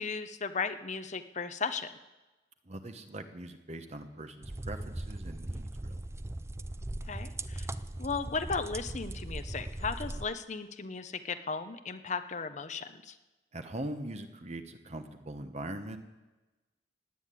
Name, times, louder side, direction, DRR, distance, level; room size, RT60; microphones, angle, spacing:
voice 1, 0.0-1.9 7.1-7.7 8.0-13.1, left 4 dB, 40° left, 10 dB, 0.8 m, -36 dB
voice 2, 2.6-6.0 13.5-16.0, right 1 dB, 40° right, 7 dB, 1.1 m, -41 dB
sound 1, 4.4-10.3, right 1 dB, 15° right, 0.5 m, -39 dB
18.0 x 9.5 x 8.5 m, 1.1 s
head